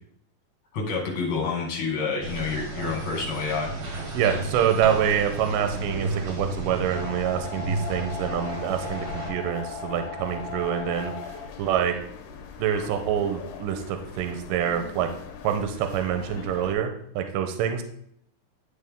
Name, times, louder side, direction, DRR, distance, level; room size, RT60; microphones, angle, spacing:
voice 1, 0.7-3.7, left 4 dB, 45° left, -2 dB, 2.1 m, -28 dB
sound 1, 2.2-9.3, right 2 dB, 55° right, 1.5 m, -33 dB
voice 2, 4.1-11.1 11.6-12.0 12.6-15.1 15.4-17.8, right 9 dB, 80° right, 6 dB, 2.3 m, -26 dB
sound 2, 5.6-16.7, left 6 dB, 75° left, 2.2 m, -38 dB
10.5 x 4.3 x 3.6 m, 0.67 s
omnidirectional pair, 4.2 m